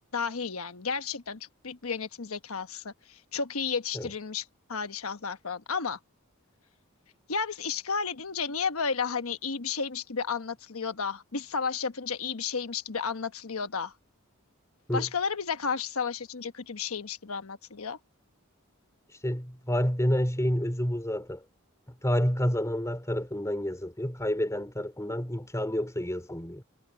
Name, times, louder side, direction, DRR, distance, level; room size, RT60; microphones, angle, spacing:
voice 1, 0.1-6.0 7.3-13.9 14.9-18.0, left 5 dB, 85° left, 1.2 m, -32 dB
voice 2, 19.2-21.4 22.0-26.6, equal, 15° left, 3.9 m, -29 dB
head